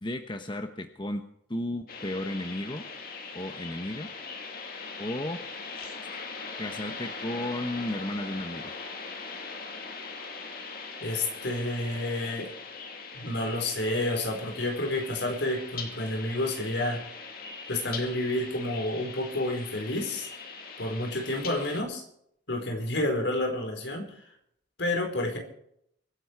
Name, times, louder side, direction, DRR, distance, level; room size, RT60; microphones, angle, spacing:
voice 1, 0.0-1.2 1.5-2.8 3.3-4.1 5.0-5.4 6.6-8.8, left 1 dB, 25° left, 6 dB, 1.0 m, -34 dB
sound 1, 1.9-21.8, left 4 dB, 50° left, 2.6 m, -41 dB
voice 2, 11.0-12.5 13.1-17.0 17.7-20.3 20.8-22.0 22.5-24.1 24.8-25.4, left 1 dB, 70° left, 3 dB, 4.7 m, -30 dB
24.0 x 11.0 x 4.7 m, 0.71 s
head